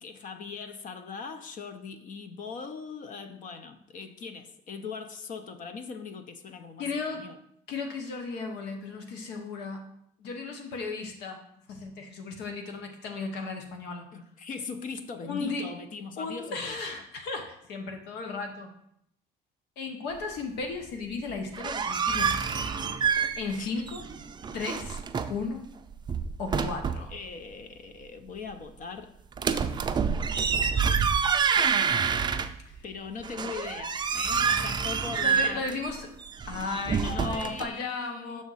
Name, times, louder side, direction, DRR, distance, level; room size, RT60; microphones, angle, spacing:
voice 1, 0.0-6.9 7.1-7.4 14.1-16.8 23.6-23.8 27.1-29.2 30.6-31.1 31.5-31.9 32.8-35.7 37.0-38.4, left 5 dB, 50° left, 0.6 m, -40 dB
voice 2, 6.8-7.3 7.7-9.9 10.2-11.4 11.7-14.1 15.2-15.7 16.2-18.7 19.8-22.7 23.4-24.0 24.5-25.0 25.3-25.7 26.4-27.1 32.6-32.8 35.2-36.2 36.5-38.4, left 4 dB, 85° left, 1.0 m, -35 dB
sound 1, 21.4-23.6 23.9-25.4 25.9-27.1 29.4-32.8 33.2-37.7, right 6 dB, 25° right, 0.4 m, -27 dB
6.3 x 3.6 x 5.5 m
cardioid pair, 110°, 17 cm